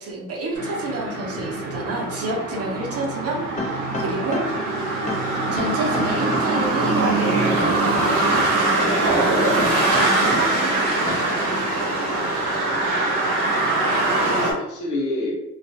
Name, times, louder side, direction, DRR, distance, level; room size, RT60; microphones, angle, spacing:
voice 1, 0.0-4.4 5.5-11.1, right 2 dB, 50° right, -1 dB, 0.8 m, -29 dB
sound 1, 0.6-14.5, right 2 dB, 85° right, 0.8 m, -22 dB
sound 2, 3.6-4.7 5.1-6.6 7.1-8.6 9.1-10.6 11.1-11.4, left 3 dB, 25° left, 0.6 m, -30 dB
voice 2, 3.9-4.5 13.8-15.3, left 1 dB, 80° left, -2 dB, 1.0 m, -31 dB
2.3 x 2.2 x 2.7 m, 0.89 s
cardioid pair, 90°, 30 cm